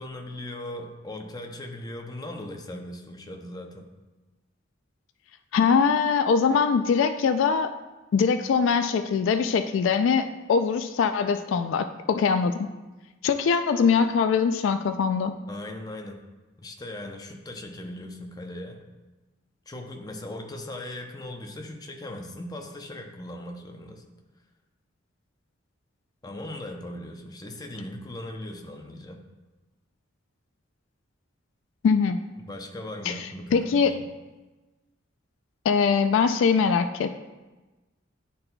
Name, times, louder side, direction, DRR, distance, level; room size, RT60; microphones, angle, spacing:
voice 1, 0.0-3.9 15.5-16.3 16.6-18.9 19.7-24.0 26.2-29.2 32.4-34.0, left 1 dB, 20° left, 2 dB, 0.6 m, -38 dB
voice 2, 5.5-7.7 8.1-12.7 13.2-15.3 31.8-32.2 33.1-33.2 33.5-33.9 35.7-37.2, left 6 dB, 70° left, 9 dB, 0.3 m, -22 dB
10.5 x 4.0 x 2.2 m, 1.2 s
head